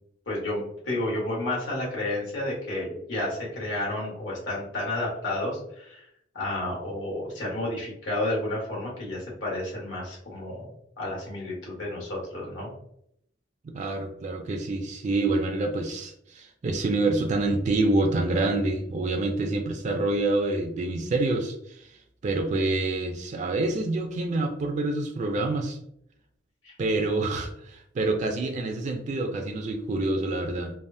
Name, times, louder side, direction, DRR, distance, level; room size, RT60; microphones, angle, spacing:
voice 1, 0.3-6.1 6.3-10.6 11.0-12.7 26.6-26.7 27.1-27.2, left 1 dB, 80° left, -4 dB, 1.4 m, -31 dB
voice 2, 13.6-21.9 22.2-25.8 26.8-30.7, right 2 dB, 40° right, 4 dB, 0.3 m, -27 dB
3.3 x 2.0 x 2.6 m, 0.72 s
head